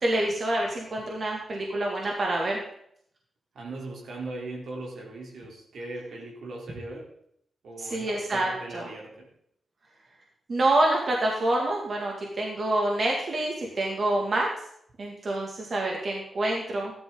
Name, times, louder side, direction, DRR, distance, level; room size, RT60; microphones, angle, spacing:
voice 1, 0.0-2.6 7.8-8.9 10.5-14.5 15.0-16.9, right 1 dB, 50° right, -1 dB, 2.3 m, -27 dB
voice 2, 3.5-7.1 7.6-9.3, right 2 dB, 80° right, -1 dB, 3.6 m, -39 dB
13.5 x 11.5 x 3.9 m, 0.70 s
cardioid pair, 60°, 0 cm